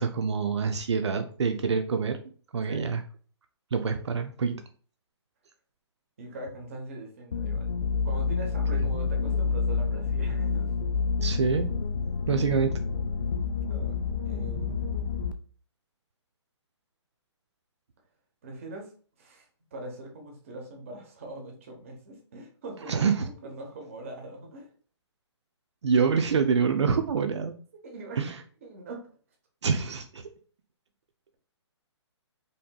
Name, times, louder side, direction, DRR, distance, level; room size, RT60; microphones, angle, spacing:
voice 1, 0.0-2.2 2.5-3.0 3.7-4.6 11.2-11.7 12.3-12.7 22.9-23.3 25.8-27.5 28.2-28.4 29.6-30.3, right 5 dB, 70° right, 6 dB, 0.5 m, -26 dB
voice 2, 6.2-7.7 8.0-10.7 13.7-13.9 14.2-14.8 18.4-18.9 19.2-24.7 27.8-28.3 28.6-29.1, right 1 dB, 30° right, 1 dB, 0.9 m, -42 dB
sound 1, 7.3-15.3, left 5 dB, 45° left, 0.4 m, -28 dB
5.1 x 2.8 x 2.2 m, 0.42 s
hypercardioid pair, 175°, 15 cm